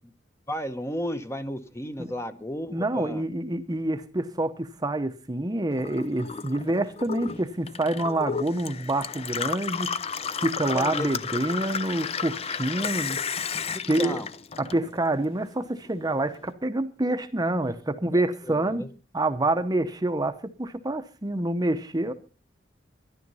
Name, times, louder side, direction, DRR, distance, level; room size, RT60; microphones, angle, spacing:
voice 1, 0.5-3.2 10.7-11.1 13.7-14.3 18.1-18.2 18.5-18.9, equal, 15° left, 0.9 m, -33 dB
voice 2, 2.7-9.9 10.4-13.2 13.9-14.2 14.6-18.8 19.1-22.1, right 2 dB, 20° right, 0.8 m, -27 dB
Gurgling / Water tap faucet / Sink (filling or washing), 5.7-15.2 15.5-16.4, left 6 dB, 35° left, 0.6 m, -32 dB
12.5 x 11.5 x 5.5 m
head